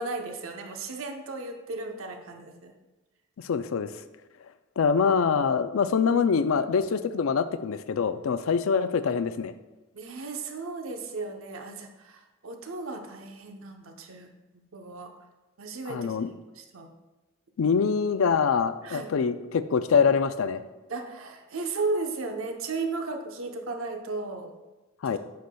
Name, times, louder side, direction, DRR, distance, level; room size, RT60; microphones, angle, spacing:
voice 1, 0.0-2.7 9.9-14.3 14.7-15.1 15.6-16.2 16.6-16.9 18.8-19.1 20.9-24.5 25.1-25.2, right 3 dB, 75° right, 4 dB, 0.8 m, -35 dB
voice 2, 3.4-3.9 4.8-9.5 15.9-16.3 17.6-20.6 25.0-25.2, left 6 dB, 75° left, 12 dB, 0.4 m, -24 dB
9.4 x 6.5 x 2.3 m, 1.1 s
head